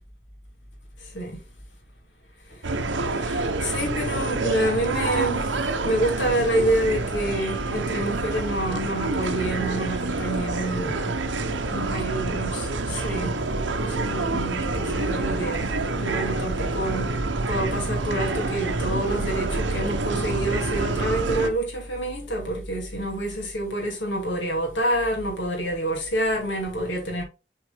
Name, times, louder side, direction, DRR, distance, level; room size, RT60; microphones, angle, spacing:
voice 1, 1.0-1.4 2.5-2.6 3.0-11.2 11.7-13.4 13.8-17.1 17.5-27.2, right 1 dB, 80° left, 2.5 m, -28 dB
sound 1, 2.6-21.5, right 3 dB, 75° right, 0.9 m, -27 dB
7.5 x 4.6 x 3.5 m
head